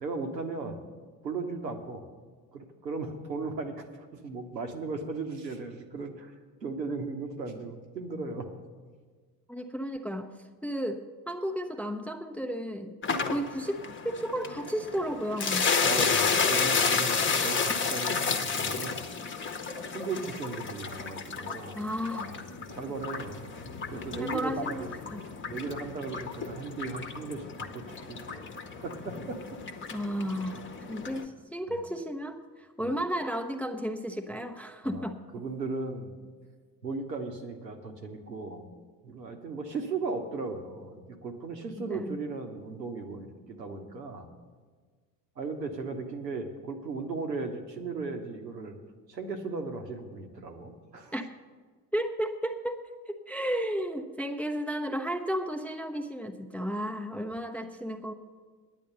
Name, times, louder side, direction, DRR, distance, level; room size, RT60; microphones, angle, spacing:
voice 1, 0.0-0.8 1.2-2.0 2.5-6.3 6.6-8.5 15.8-19.0 19.9-21.8 22.1-22.4 22.7-23.5 23.9-24.9 25.5-28.5 28.8-29.6 31.7-31.8 32.8-33.0 34.8-36.1 36.8-38.7 39.0-44.2 45.4-48.8 49.1-51.1, right 3 dB, 85° right, 5 dB, 1.0 m, -37 dB
voice 2, 9.5-10.3 10.6-13.0 13.2-15.7 21.7-22.4 24.2-25.2 29.9-35.2 41.8-42.2 51.1-51.3 51.9-58.1, equal, 5° left, 5 dB, 0.5 m, -33 dB
sound 1, 13.0-31.2, left 5 dB, 25° left, 0.9 m, -31 dB
10.0 x 9.1 x 6.6 m, 1.5 s
figure-of-eight pair, 55°, 49 cm